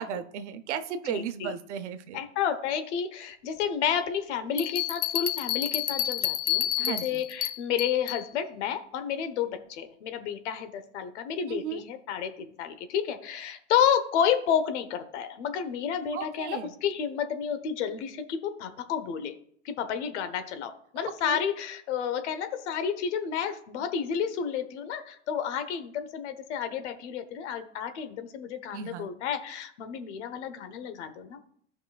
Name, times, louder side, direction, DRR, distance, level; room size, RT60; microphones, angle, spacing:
voice 1, 0.0-2.2 6.8-7.2 11.5-11.8 16.1-16.7 21.2-21.4 28.7-29.1, right 7 dB, 85° right, 10 dB, 0.9 m, -35 dB
voice 2, 1.0-1.5 2.1-6.7 7.0-19.3 19.6-31.4, left 8 dB, 80° left, 9 dB, 1.1 m, -31 dB
sound 1, 4.6-8.2, left 12 dB, 25° left, 0.7 m, -29 dB
14.0 x 5.5 x 2.3 m, 0.63 s
supercardioid pair, 120°, 34 cm